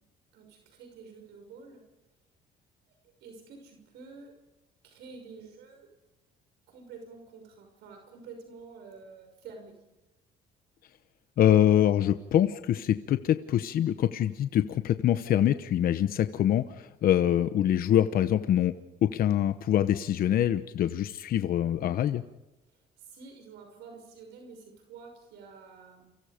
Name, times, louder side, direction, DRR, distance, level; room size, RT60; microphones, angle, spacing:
voice 1, 0.3-1.8 2.9-3.0 3.2-4.3 4.8-5.9 6.7-9.8 22.7-26.1, right 4 dB, 85° right, 3 dB, 5.9 m, -49 dB
voice 2, 11.4-18.7 19.0-22.2, left 11 dB, 60° left, 10 dB, 1.1 m, -24 dB
30.0 x 25.0 x 5.2 m, 1.0 s
cardioid pair, 110°, 17 cm